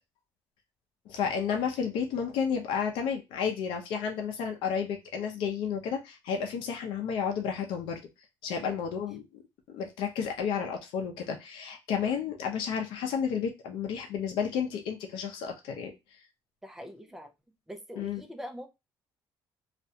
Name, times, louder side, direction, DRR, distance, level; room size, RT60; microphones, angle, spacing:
voice 1, 1.1-8.0 8.4-9.4 9.7-15.9 18.0-18.2, left 7 dB, 85° left, 3 dB, 0.6 m, -32 dB
voice 2, 16.6-17.3 17.7-18.7, equal, 5° right, 6 dB, 0.4 m, -43 dB
2.4 x 2.2 x 2.7 m, 0.23 s
cardioid pair, 145°, 8 cm